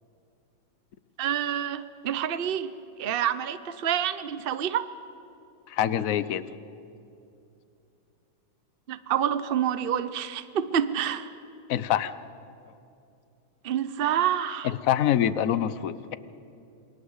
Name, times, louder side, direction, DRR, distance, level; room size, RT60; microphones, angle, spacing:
voice 1, 1.2-2.7 3.0-4.9 8.9-11.3 13.6-14.7, right 9 dB, 65° right, 13 dB, 0.5 m, -27 dB
voice 2, 5.7-6.4 11.7-12.1 14.6-16.2, left 10 dB, 55° left, 14 dB, 1.1 m, -25 dB
28.0 x 23.0 x 8.1 m, 2.7 s
omnidirectional pair, 2.0 m